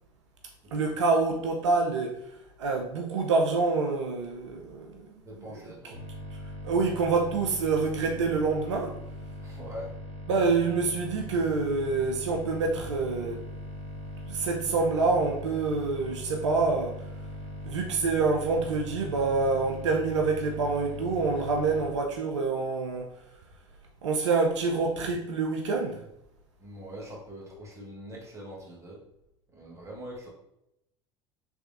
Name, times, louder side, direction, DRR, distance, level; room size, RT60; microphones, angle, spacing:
voice 1, 0.7-2.2 2.6-5.7 6.6-9.0 10.3-13.4 14.3-16.9 17.6-23.1 24.0-26.0, right 4 dB, 80° right, 2 dB, 0.5 m, -27 dB
voice 2, 5.2-6.0 9.4-9.9 26.6-29.0 29.5-30.3, equal, 20° right, -3 dB, 1.4 m, -43 dB
sound 1, 5.9-21.9, equal, 45° right, 1.2 m, -40 dB
3.4 x 3.3 x 2.5 m, 0.80 s
hypercardioid pair, 80°, 15 cm